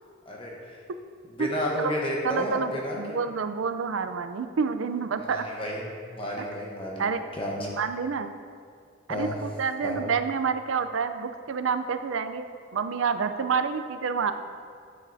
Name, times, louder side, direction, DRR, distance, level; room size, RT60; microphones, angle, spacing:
voice 1, 0.3-0.8 1.4-3.2 5.3-7.1 7.4-7.7 9.1-9.3 9.8-10.0, equal, 25° left, -2 dB, 0.9 m, -31 dB
voice 2, 2.2-5.5 6.4-6.5 7.0-7.2 7.6-8.3 9.1-12.5 12.7-14.3, right 5 dB, 85° right, 10 dB, 0.5 m, -28 dB
9.9 x 8.8 x 2.6 m, 2.2 s
head